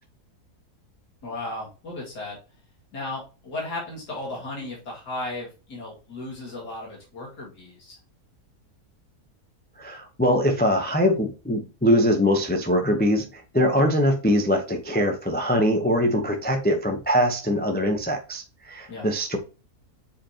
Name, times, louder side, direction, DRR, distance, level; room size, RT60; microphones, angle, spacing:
voice 1, 1.2-2.4 2.9-8.0 18.9-19.1, left 2 dB, 85° left, 2.9 m, -35 dB
voice 2, 9.8-19.4, equal, 10° left, 0.6 m, -22 dB
7.1 x 5.1 x 2.9 m
omnidirectional pair, 1.7 m